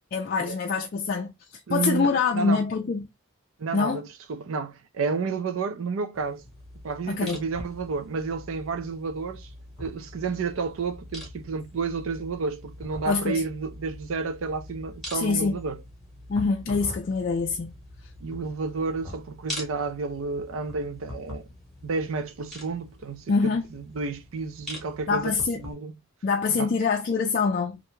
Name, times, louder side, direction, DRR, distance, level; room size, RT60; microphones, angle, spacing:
voice 1, 0.1-1.3 1.7-3.1 3.7-4.0 7.1-7.4 13.1-13.4 15.1-15.6 16.3-17.7 23.3-23.7 25.1-25.6 26.2-27.7, left 4 dB, 45° left, 0.3 m, -25 dB
voice 2, 1.7-2.6 3.6-6.4 6.8-9.5 9.8-15.8 18.2-21.4 21.8-26.0 26.5-26.7, right 4 dB, 70° right, 0.4 m, -31 dB
sound 1, 6.2-25.7, left 1 dB, ahead, 0.9 m, -43 dB
2.5 x 2.2 x 3.0 m
head